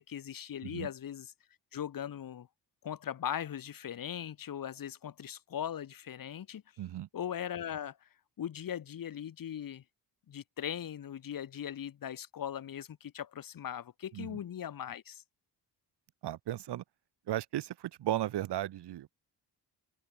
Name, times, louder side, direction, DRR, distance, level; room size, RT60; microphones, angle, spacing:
voice 1, 0.0-1.3 1.7-2.5 2.8-6.6 7.1-8.0 8.4-9.8 10.3-15.2, left 9 dB, 50° left, 6.2 m, -39 dB
voice 2, 6.8-7.1 14.1-14.4 16.2-16.8 17.3-19.1, right 13 dB, 70° right, 2.2 m, -35 dB
wide cardioid pair, 175°, 42 cm